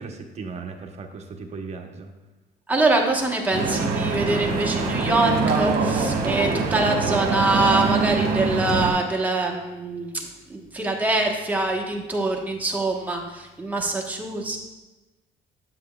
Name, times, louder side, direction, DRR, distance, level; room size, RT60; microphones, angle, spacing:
voice 1, 0.0-2.1, right 4 dB, 40° right, 3 dB, 0.9 m, -37 dB
voice 2, 2.7-10.2 10.5-14.6, right 2 dB, 10° right, 0 dB, 1.1 m, -24 dB
Stream / Boat Water vehicle, 3.5-8.9, right 4 dB, 60° right, 1.2 m, -24 dB
7.8 x 7.6 x 2.3 m, 1.1 s
cardioid pair, 110°, 17 cm